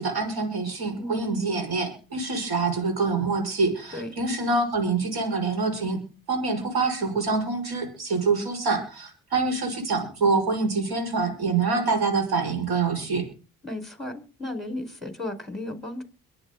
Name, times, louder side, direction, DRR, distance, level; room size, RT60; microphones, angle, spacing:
voice 1, 0.0-6.0 6.3-13.2, right 4 dB, 65° right, 5 dB, 6.4 m, -26 dB
voice 2, 13.6-16.0, left 1 dB, ahead, 7 dB, 5.2 m, -34 dB
24.0 x 9.8 x 4.0 m, 0.34 s
supercardioid pair, 50°, 40 cm